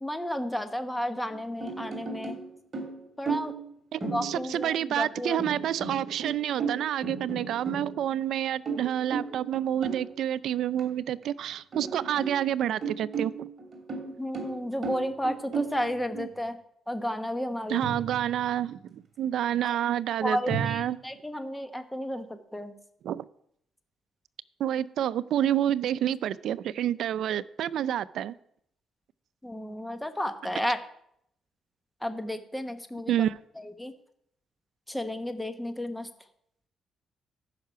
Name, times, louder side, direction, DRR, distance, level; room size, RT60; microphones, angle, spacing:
voice 1, 0.0-2.4 3.2-3.5 4.0-5.4 14.2-16.6 16.9-17.8 19.6-19.8 20.2-22.8 29.4-30.8 32.0-33.1 33.6-33.9 34.9-36.1, equal, 5° left, 8 dB, 1.1 m, -32 dB
sound 1, 1.3-2.5 2.7-3.7 4.0-4.7 5.4-8.2 8.7-10.1 10.8-10.9 11.2-11.3 11.7-12.4 12.8-15.9 17.8-18.6 20.5-20.8, right 4 dB, 40° right, 2.8 m, -35 dB
voice 2, 3.9-13.5 16.1-16.3 17.7-21.0 23.0-23.3 24.6-28.3 33.1-33.4, right 11 dB, 75° right, 18 dB, 0.4 m, -28 dB
14.0 x 5.8 x 5.7 m, 0.71 s
cardioid pair, 90°, 0 cm